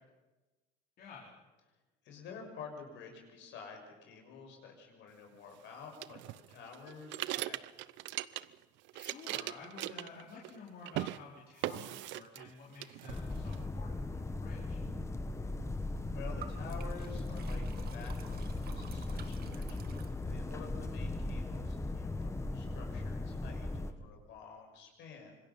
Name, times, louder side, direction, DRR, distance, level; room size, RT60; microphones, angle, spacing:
voice 1, 1.0-1.3 8.9-14.8, left 4 dB, 50° left, -4 dB, 4.0 m, -51 dB
voice 2, 1.7-7.6 16.1-25.4, left 5 dB, 65° left, 2 dB, 6.3 m, -50 dB
sound 1, 6.0-8.6 8.9-10.6 10.8-11.2 11.6-12.5 12.8-13.6, right 16 dB, 65° right, 0.7 m, -39 dB
sound 2, 13.1-23.9, left 2 dB, 15° left, 1.4 m, -38 dB
Liquid, 16.4-20.6, right 8 dB, 50° right, 1.7 m, -53 dB
26.0 x 21.0 x 5.6 m, 1.1 s
supercardioid pair, 105°, 20 cm